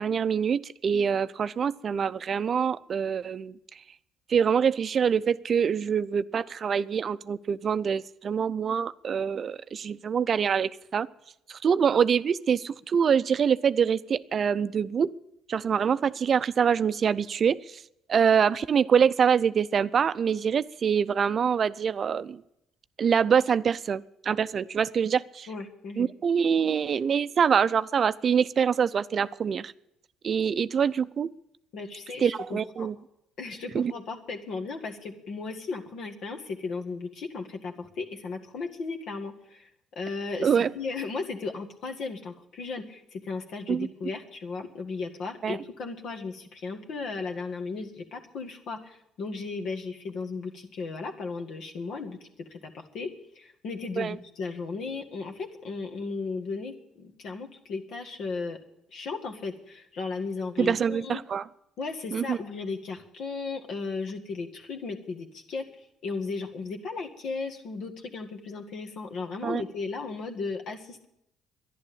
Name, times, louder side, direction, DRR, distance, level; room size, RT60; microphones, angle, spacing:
voice 1, 0.0-3.5 4.3-11.1 11.5-15.1 15.5-17.8 18.1-22.4 23.0-25.5 26.0-29.7 30.2-31.3 32.2-32.9 33.7-33.9 40.4-40.7 43.7-43.9 45.4-45.6 54.0-54.2 60.6-61.4 62.1-62.4 69.4-69.6, right 7 dB, 50° right, 15 dB, 0.5 m, -25 dB
voice 2, 25.5-26.1 31.7-32.9 33.4-39.7 40.0-58.6 58.9-61.2 61.8-71.1, left 4 dB, 65° left, 3 dB, 1.9 m, -35 dB
11.5 x 11.0 x 8.7 m, 0.79 s
supercardioid pair, 75°, 0 cm